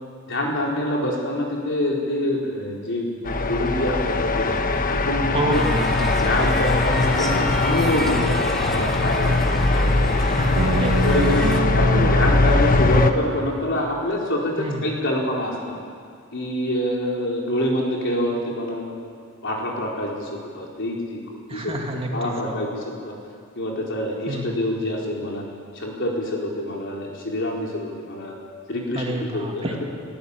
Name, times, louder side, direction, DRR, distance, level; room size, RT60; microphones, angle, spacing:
voice 1, 0.3-4.5 4.9-5.7 6.0-10.4 11.0-11.4 11.7-15.7 16.3-18.8 19.4-20.3 20.5-21.2 21.5-21.8 22.1-23.1 23.5-25.4 25.7-28.3 28.7-29.8, left 1 dB, 60° left, -2 dB, 4.5 m, -26 dB
sound 1, 3.2-13.1, left 3 dB, 45° left, 1.2 m, -21 dB
voice 2, 5.3-6.1 10.2-11.1 14.6-14.9 21.5-22.6 24.3-24.6 28.9-29.7, right 1 dB, 30° right, 1 dB, 2.4 m, -29 dB
sound 2, 5.5-11.6, equal, ahead, 2.1 m, -32 dB
sound 3, 10.5-14.7, right 3 dB, 80° right, 1.0 m, -28 dB
23.5 x 15.0 x 8.5 m, 2.2 s
head